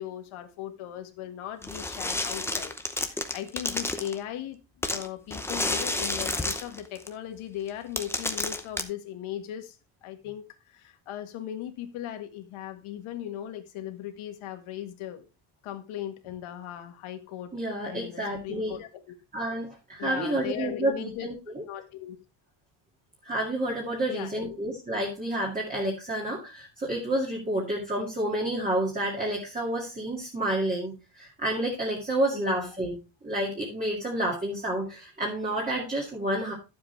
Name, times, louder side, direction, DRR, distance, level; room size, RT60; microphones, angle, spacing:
voice 1, 0.0-2.8 3.0-4.6 4.9-15.3 15.6-17.5 17.8-19.1 20.0-21.3 21.7-22.2 24.1-24.6 32.3-32.7, left 11 dB, 90° left, 6 dB, 1.9 m, -38 dB
sound 1, 1.6-4.2 4.8-7.1 7.7-7.8 8.0-8.8, left 2 dB, 5° left, 0.7 m, -30 dB
voice 2, 17.5-18.8 19.3-21.6 23.2-33.0 33.2-36.5, right 1 dB, 15° right, -3 dB, 2.3 m, -29 dB
12.0 x 7.6 x 3.3 m, 0.28 s
cardioid pair, 170°, 47 cm